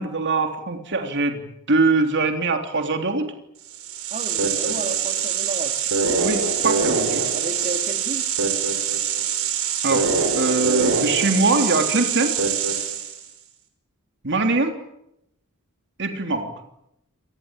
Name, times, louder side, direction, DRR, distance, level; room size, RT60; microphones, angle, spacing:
voice 1, 0.0-1.4 1.7-3.3 6.2-7.2 9.8-12.4 14.2-14.7 16.0-16.5, right 3 dB, 55° right, 5 dB, 3.3 m, -22 dB
sound 1, 3.7-13.3, right 6 dB, 90° right, 5.5 m, -24 dB
voice 2, 4.1-5.8 7.3-8.3 16.1-16.2, right 2 dB, 35° right, 5 dB, 3.1 m, -32 dB
28.0 x 19.5 x 8.9 m, 0.80 s
head